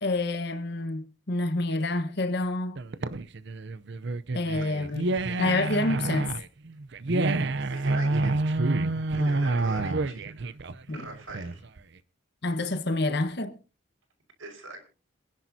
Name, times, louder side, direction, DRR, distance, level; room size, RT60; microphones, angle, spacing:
voice 1, 0.0-2.8 4.3-5.1 5.4-6.4 9.1-9.3 10.9-11.1 12.4-13.6, left 2 dB, 50° left, 1.3 m, -28 dB
sound 1, 2.8-11.8, right 2 dB, 55° right, 0.6 m, -28 dB
voice 2, 7.7-8.5 9.1-10.3 10.9-11.6 14.4-14.9, right 2 dB, 75° right, 5.1 m, -42 dB
27.0 x 10.5 x 2.8 m
head